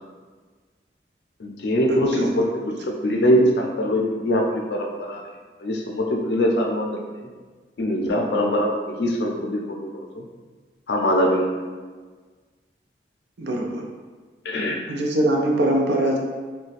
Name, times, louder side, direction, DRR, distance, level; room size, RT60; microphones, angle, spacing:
voice 1, 1.4-5.3 5.6-7.3 7.8-10.3 10.9-11.5 14.4-14.8, equal, 70° left, 1 dB, 0.5 m, -23 dB
voice 2, 13.4-13.8 14.9-16.2, right 1 dB, 70° right, 0 dB, 0.5 m, -22 dB
2.5 x 2.2 x 4.0 m, 1.4 s
head